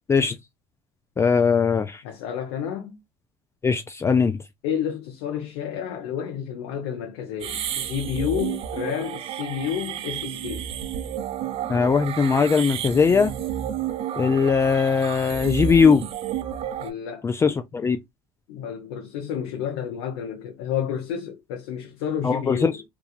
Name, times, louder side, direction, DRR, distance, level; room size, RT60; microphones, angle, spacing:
voice 1, 1.2-2.0 3.6-4.4 11.7-13.3 14.2-16.0 17.2-18.0 22.2-22.7, left 5 dB, 20° left, 0.4 m, -20 dB
voice 2, 2.0-3.0 4.6-10.7 16.8-17.3 18.5-22.8, left 8 dB, 80° left, 0.8 m, -30 dB
sound 1, 7.4-16.9, right 9 dB, 50° right, 0.5 m, -31 dB
3.1 x 2.3 x 2.3 m
supercardioid pair, 90°, 13 cm